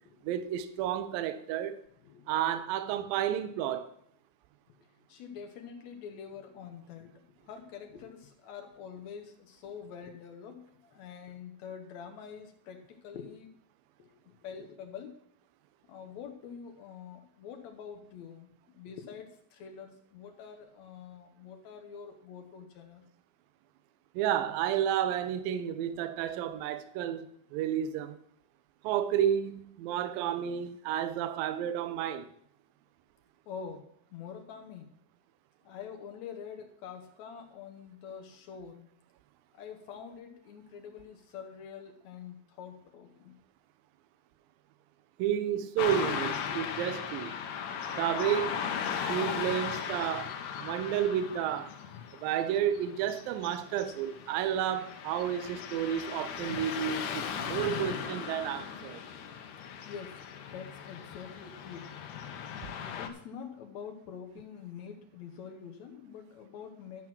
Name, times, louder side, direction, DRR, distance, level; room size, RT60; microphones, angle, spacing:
voice 1, 0.2-1.8 2.3-3.9 24.2-28.2 28.8-32.3 45.2-47.4 47.9-48.6 49.1-51.7 52.2-59.0, right 10 dB, 80° right, 2.3 m, -31 dB
voice 2, 5.1-13.5 14.0-15.1 15.9-23.0 33.5-34.9 35.6-38.9 39.6-43.4 46.4-46.6 59.9-60.2 60.5-61.9 63.0-67.1, left 7 dB, 90° left, 1.6 m, -46 dB
Car passing by / Traffic noise roadway noise, 45.8-63.1, left 7 dB, 70° left, 2.0 m, -37 dB
13.0 x 6.1 x 6.0 m
omnidirectional pair, 4.5 m